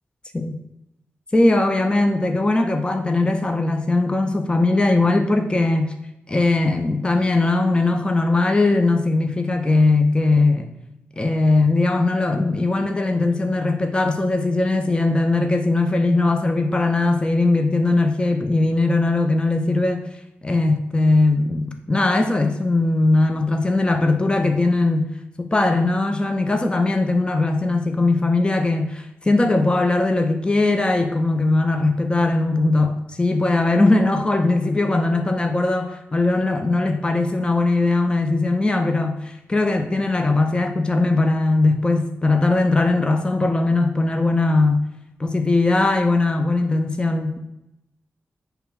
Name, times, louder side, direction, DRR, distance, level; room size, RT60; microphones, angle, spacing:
voice 1, 1.3-5.9 6.3-10.7 11.2-20.1 20.4-25.1 25.4-44.9 45.2-47.4, left 2 dB, 20° left, 0.6 m, -19 dB
8.3 x 3.4 x 5.9 m
wide cardioid pair, 105°, 5 cm